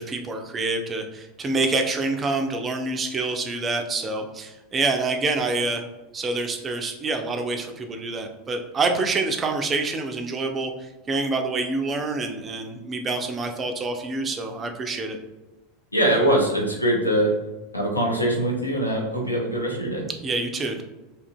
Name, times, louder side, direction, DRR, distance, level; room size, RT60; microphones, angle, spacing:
voice 1, 0.0-5.8 6.1-15.2 20.2-20.8, right 3 dB, 25° right, 4 dB, 0.4 m, -27 dB
voice 2, 15.9-17.3 17.7-20.1, right 1 dB, 90° left, -1 dB, 0.5 m, -22 dB
2.8 x 2.4 x 2.2 m, 1.1 s
figure-of-eight pair, 80°, 0 cm